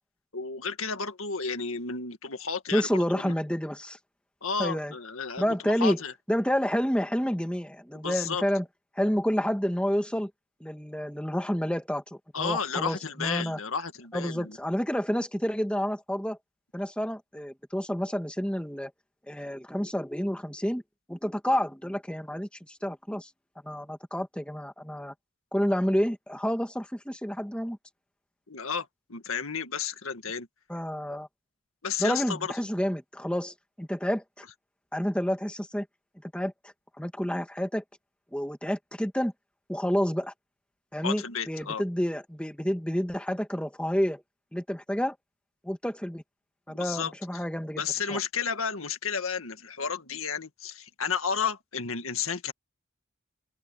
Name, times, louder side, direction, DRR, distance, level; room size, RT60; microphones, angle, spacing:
voice 1, 0.3-3.3 4.4-6.1 8.0-8.4 12.3-14.6 28.5-30.5 31.1-31.2 31.8-32.5 41.0-41.8 46.7-47.1 47.8-52.5, left 6 dB, 90° left, 1.8 m, -32 dB
voice 2, 2.7-4.0 4.6-4.9 5.4-6.0 6.3-8.6 8.9-10.3 10.6-13.6 14.1-16.4 16.7-18.9 19.3-20.8 21.1-23.3 23.6-25.1 25.5-27.8 30.7-31.3 32.0-34.4 34.9-35.9 36.2-37.8 38.3-39.3 39.7-40.3 40.9-44.2 44.5-45.2 45.6-46.2 46.7-47.8 48.1-48.2, equal, 5° left, 1.7 m, -29 dB
open air
head